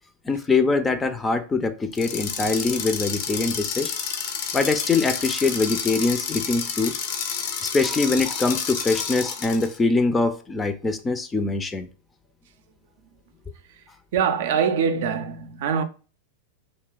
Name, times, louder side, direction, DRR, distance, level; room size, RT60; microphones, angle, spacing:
voice 1, 0.3-3.9 4.5-6.9 7.7-11.9, left 3 dB, 15° left, 0.5 m, -23 dB
sound 1, 1.9-9.8, left 7 dB, 60° left, 0.6 m, -30 dB
voice 2, 14.1-15.8, right 7 dB, 65° right, 0.5 m, -23 dB
3.2 x 2.3 x 3.7 m
hypercardioid pair, 105°, 0 cm